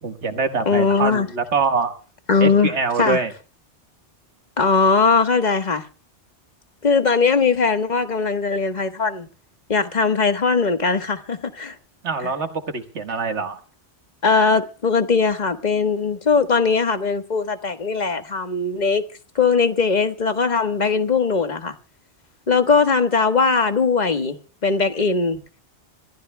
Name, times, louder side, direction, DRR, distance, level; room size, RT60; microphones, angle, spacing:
voice 1, 0.0-1.9 2.4-3.3 12.0-13.6, right 4 dB, 75° right, 1.8 m, -24 dB
voice 2, 0.7-1.3 2.3-2.7 3.0-3.2 4.6-5.8 6.8-9.3 9.7-11.7 14.2-19.0 19.3-21.7 22.5-25.4, left 4 dB, 40° left, 1.4 m, -20 dB
26.0 x 14.5 x 2.2 m
omnidirectional pair, 1.2 m